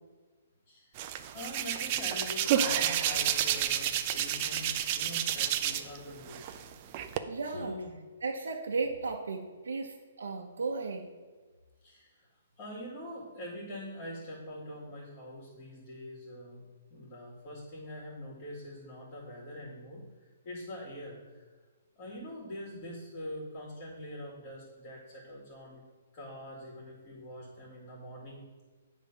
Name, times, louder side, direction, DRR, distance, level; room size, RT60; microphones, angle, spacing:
Hands, 1.0-6.0 6.3-7.2, right 10 dB, 35° right, 0.5 m, -30 dB
voice 1, 1.3-7.0 7.4-7.9 11.8-12.2 12.6-16.6 16.9-20.0 20.4-21.4 22.0-25.8 26.1-28.6, left 1 dB, 35° left, -5 dB, 2.1 m, -44 dB
voice 2, 7.3-7.7 8.2-11.1, right 4 dB, 85° right, 2 dB, 0.7 m, -35 dB
8.5 x 3.6 x 5.4 m, 1.4 s
hypercardioid pair, 155°, 0 cm